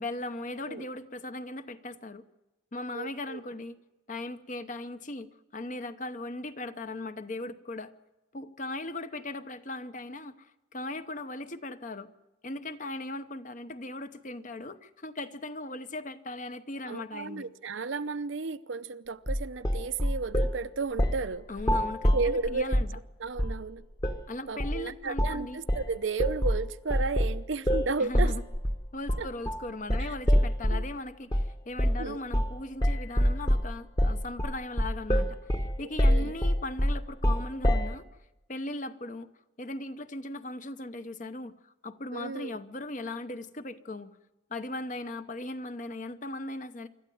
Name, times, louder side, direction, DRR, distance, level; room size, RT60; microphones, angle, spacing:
voice 1, 0.0-2.2 2.7-3.8 4.1-7.9 8.3-12.1 12.4-17.5 21.5-22.9 24.3-25.6 28.0-28.4 28.9-38.0 38.5-39.3 39.6-44.1 44.5-46.9, left 2 dB, 40° left, 11 dB, 0.9 m, -38 dB
voice 2, 2.9-3.4 16.8-21.5 22.1-22.8 23.2-23.8 24.5-28.3 29.2-29.3 30.0-30.1 30.7-30.8 32.0-32.2 36.1-36.3 42.1-42.5, right 4 dB, 70° right, 12 dB, 0.7 m, -33 dB
sound 1, 19.3-20.6 21.0-21.3 21.6-23.0 23.4-23.6 24.0-24.2 24.6-24.8 25.2-25.4 25.7-30.9 31.3-31.5 31.8-32.1 32.3-32.6 32.8-37.9, equal, 20° left, 1.1 m, -26 dB
25.5 x 13.0 x 9.3 m, 1.0 s
head